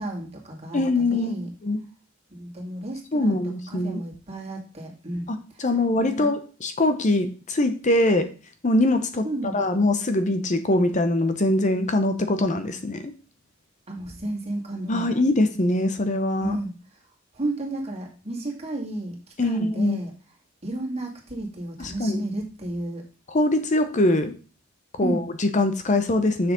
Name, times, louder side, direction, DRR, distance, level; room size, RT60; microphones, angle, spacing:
voice 1, 0.0-1.5 2.3-3.4 3.7-5.3 6.0-6.2 9.2-9.6 13.9-15.1 16.4-16.7 17.3-19.2 19.4-20.1 20.6-23.1 25.0-25.2, right 1 dB, 30° right, 0 dB, 2.1 m, -32 dB
voice 2, 0.7-1.3 1.6-1.8 3.1-4.0 5.3-8.3 8.6-13.1 14.9-16.6 19.4-20.0 21.8-22.2 23.3-24.3 24.9-26.5, left 1 dB, 40° left, 9 dB, 0.8 m, -23 dB
7.0 x 6.4 x 3.7 m, 0.36 s
head